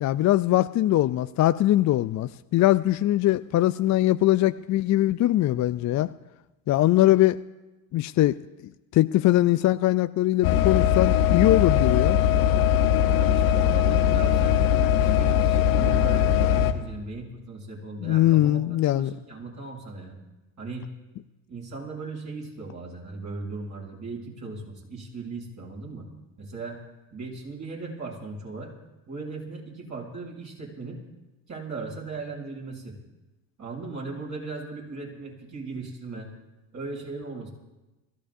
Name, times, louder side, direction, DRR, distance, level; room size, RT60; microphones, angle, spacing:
voice 1, 0.0-6.1 6.7-7.4 7.9-8.4 8.9-12.2 18.0-19.1, left 15 dB, 40° left, 12 dB, 0.5 m, -21 dB
sound 1, 10.4-16.7, left 10 dB, 75° left, 1.2 m, -21 dB
voice 2, 13.1-20.2 20.6-20.9 21.5-26.1 26.4-26.8 27.1-28.7 29.1-31.0 31.5-33.0 33.6-36.3 36.7-37.5, right 3 dB, 40° right, -2 dB, 7.2 m, -37 dB
29.5 x 15.0 x 2.7 m, 1.1 s
hypercardioid pair, 65°, 43 cm